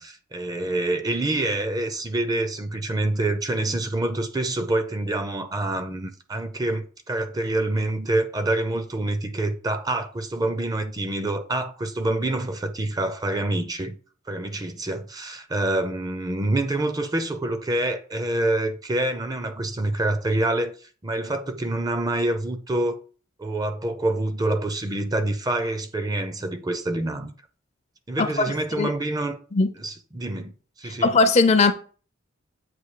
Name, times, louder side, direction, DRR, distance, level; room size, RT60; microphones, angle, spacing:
voice 1, 0.0-14.0 14.3-23.0 23.4-27.3 28.1-29.4 29.8-31.1, right 2 dB, 20° right, 0.5 m, -26 dB
voice 2, 30.8-31.7, left 3 dB, 30° left, 0.5 m, -19 dB
7.7 x 2.7 x 4.7 m
head